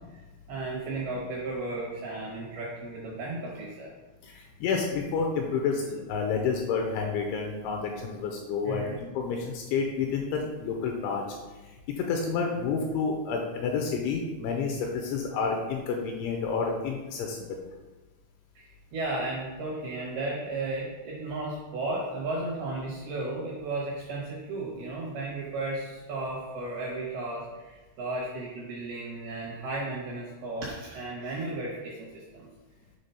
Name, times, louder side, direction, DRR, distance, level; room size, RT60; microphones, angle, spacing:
voice 1, 0.5-3.9 8.6-9.0 18.6-32.5, right 2 dB, 75° right, -4 dB, 2.3 m, -34 dB
voice 2, 4.6-11.2 12.1-17.4, left 5 dB, 85° left, 1 dB, 2.8 m, -29 dB
8.1 x 3.6 x 5.5 m, 1.2 s
omnidirectional pair, 5.9 m